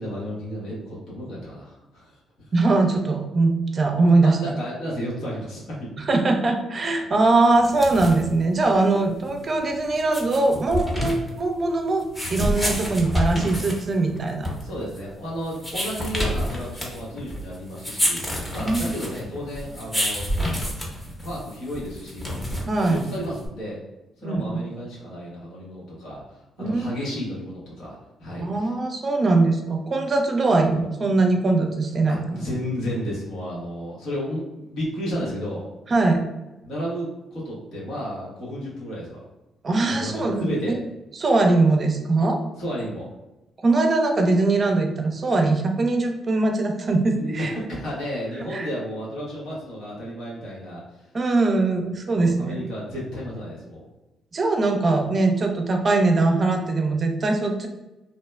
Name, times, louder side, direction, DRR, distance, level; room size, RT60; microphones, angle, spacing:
voice 1, 0.0-2.5 4.2-6.1 14.6-18.2 18.5-20.3 21.2-22.4 22.9-23.8 24.2-28.7 32.1-35.7 36.6-39.3 39.9-40.8 42.6-43.1 47.1-51.1 52.1-53.8, equal, 75° left, -5 dB, 1.2 m, -32 dB
voice 2, 2.5-4.4 6.0-12.0 12.3-14.5 18.6-18.8 22.7-23.0 24.2-24.6 26.6-27.1 28.4-32.5 35.9-36.2 39.6-40.8 41.2-42.4 43.6-47.5 48.5-48.7 51.1-52.6 54.3-57.7, right 3 dB, 45° right, 4 dB, 0.5 m, -21 dB
sound 1, 7.6-23.5, equal, 15° left, 0.9 m, -29 dB
2.8 x 2.0 x 2.2 m, 0.99 s
supercardioid pair, 60°, 0 cm